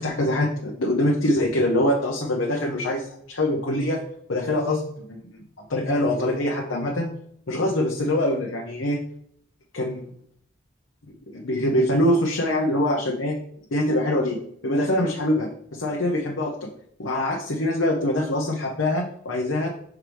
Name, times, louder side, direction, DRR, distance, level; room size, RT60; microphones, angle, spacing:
voice 1, 0.0-4.0 4.3-5.4 5.7-7.1 7.5-9.0 9.7-10.0 11.3-13.3 13.7-14.4 14.6-16.7 17.0-19.7, left 1 dB, 85° left, -1 dB, 1.0 m, -24 dB
6.2 x 4.7 x 3.5 m, 0.67 s
head